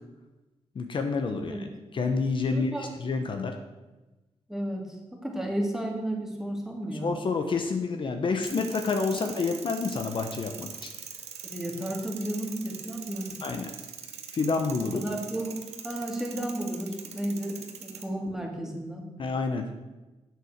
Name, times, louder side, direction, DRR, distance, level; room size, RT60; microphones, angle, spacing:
voice 1, 0.7-1.5 1.9-3.5 7.0-10.9 13.4-13.7 14.3-15.0 19.2-19.7, left 4 dB, 50° left, 5 dB, 0.9 m, -28 dB
voice 2, 1.3-1.6 2.5-2.9 4.5-7.2 9.1-9.2 11.4-13.4 14.8-15.6 15.8-19.1, right 1 dB, 5° right, 0 dB, 2.1 m, -33 dB
sound 1, 8.4-18.0, right 7 dB, 85° right, 1.1 m, -43 dB
8.0 x 7.6 x 6.5 m, 1.1 s
wide cardioid pair, 115°, 11 cm